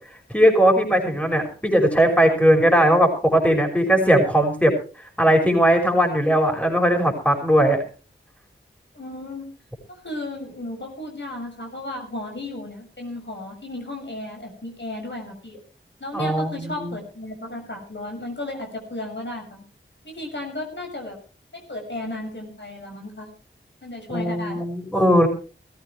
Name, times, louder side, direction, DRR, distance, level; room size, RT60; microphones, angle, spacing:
voice 1, 0.3-4.7 5.2-7.8 16.1-17.0 24.1-25.3, equal, 5° left, 3 dB, 6.0 m, -18 dB
voice 2, 8.9-9.5 9.9-15.6 16.0-19.6 20.0-21.2 21.5-23.3 23.8-24.6, left 1 dB, 60° left, 2 dB, 6.5 m, -34 dB
20.0 x 14.5 x 3.3 m, 0.36 s
wide cardioid pair, 40°, 21 cm